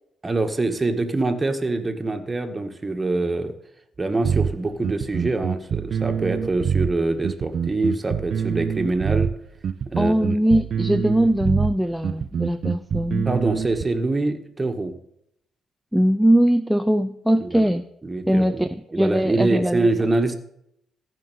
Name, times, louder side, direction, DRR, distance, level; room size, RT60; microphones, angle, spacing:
voice 1, 0.2-3.5 4.0-9.3 9.9-10.3 11.0-11.1 13.3-14.9 17.4-17.7 18.0-18.6 18.9-20.4, right 2 dB, 20° right, 6 dB, 1.8 m, -24 dB
sound 1, 4.2-13.8, right 7 dB, 55° right, 0.7 m, -25 dB
voice 2, 10.0-13.3 15.9-17.8 18.3-18.7 19.0-19.9, equal, 5° right, 8 dB, 0.6 m, -20 dB
15.0 x 6.0 x 9.3 m, 0.75 s
cardioid pair, 90°, 0 cm